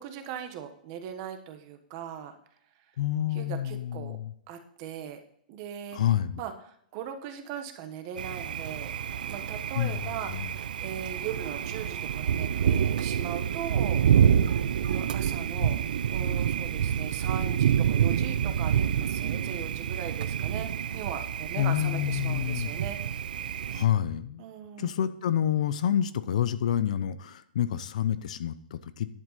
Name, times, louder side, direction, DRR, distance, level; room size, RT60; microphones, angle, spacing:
voice 1, 0.0-2.4 3.3-4.2 4.5-5.2 5.5-6.0 6.4-8.9 9.2-14.3 14.8-15.8 16.1-23.0 24.4-24.9, right 8 dB, 30° right, 7 dB, 1.2 m, -39 dB
voice 2, 3.0-4.3 5.9-6.4 9.8-10.0 10.3-10.5 15.6-15.8 21.6-22.7 23.7-24.4 24.8-29.1, left 10 dB, 55° left, 14 dB, 0.7 m, -28 dB
Thunder, 8.2-23.8, right 8 dB, 75° right, 0.5 m, -27 dB
11.0 x 7.8 x 4.1 m, 0.66 s
hypercardioid pair, 175°, 5 cm